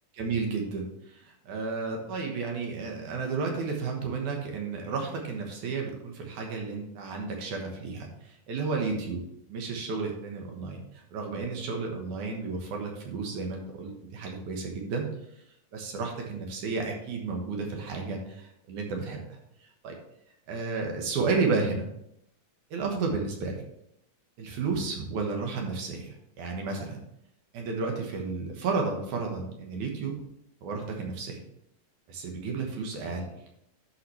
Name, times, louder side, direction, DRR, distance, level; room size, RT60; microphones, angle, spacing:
voice 1, 0.1-9.2 9.5-15.1 15.7-19.4 19.8-20.0 20.5-21.9 22.7-23.6 24.4-27.0 27.5-30.2 30.6-31.4 32.1-33.3, right 4 dB, 70° right, 1 dB, 2.6 m, -32 dB
12.0 x 5.7 x 3.2 m, 0.77 s
omnidirectional pair, 3.8 m